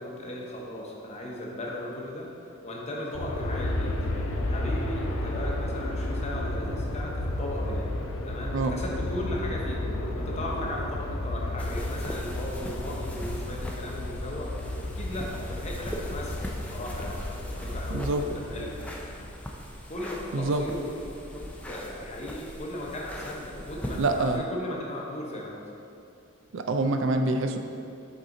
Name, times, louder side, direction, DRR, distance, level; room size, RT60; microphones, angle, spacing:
voice 1, 0.0-4.0 4.5-7.9 8.2-9.8 10.1-14.5 14.9-17.3 17.5-18.7 19.9-21.0 21.3-25.6, left 1 dB, 30° left, -2 dB, 0.8 m, -37 dB
Aircraft, 3.1-19.3, left 1 dB, 65° left, 0.6 m, -32 dB
sound 1, 11.6-24.4, equal, 5° left, 0.4 m, -40 dB
voice 2, 17.9-18.2 20.3-20.6 24.0-24.4 26.5-27.6, right 2 dB, 55° right, 6 dB, 0.4 m, -26 dB
7.7 x 4.2 x 3.8 m, 2.6 s
head